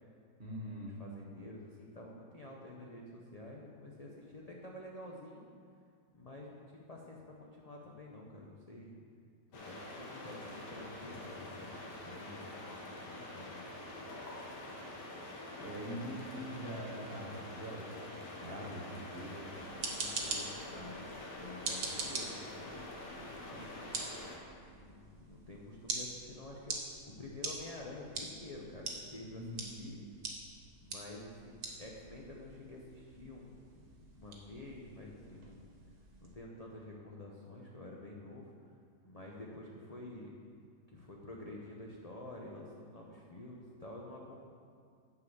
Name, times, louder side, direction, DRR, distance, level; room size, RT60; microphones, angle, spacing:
voice 1, 0.4-1.0 15.6-18.0 18.4-19.6 29.3-29.8, equal, 40° right, -2 dB, 1.5 m, -43 dB
voice 2, 1.0-5.4 6.1-8.9 9.5-13.6 15.6-15.8 18.4-19.2 19.8-23.9 24.7-30.0 30.8-35.7 36.2-38.7 39.0-40.3 40.9-44.4, left 1 dB, 40° left, -2 dB, 0.5 m, -49 dB
sound 1, 9.5-24.4, left 1 dB, 80° left, 1.9 m, -46 dB
sound 2, 19.5-36.3, right 3 dB, 60° right, 1.6 m, -44 dB
9.6 x 4.7 x 6.9 m, 2.2 s
omnidirectional pair, 1.8 m